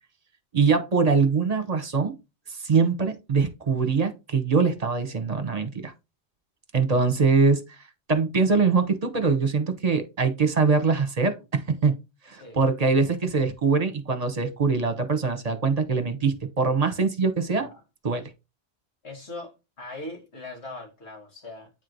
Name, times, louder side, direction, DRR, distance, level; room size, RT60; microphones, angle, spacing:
voice 1, 0.5-2.1 2.5-5.9 6.7-7.8 8.1-12.0 12.3-17.7 18.0-18.2, right 4 dB, 40° right, 1.0 m, -23 dB
voice 2, 19.0-21.7, left 2 dB, 85° left, 2.1 m, -40 dB
8.8 x 3.1 x 3.9 m
omnidirectional pair, 1.1 m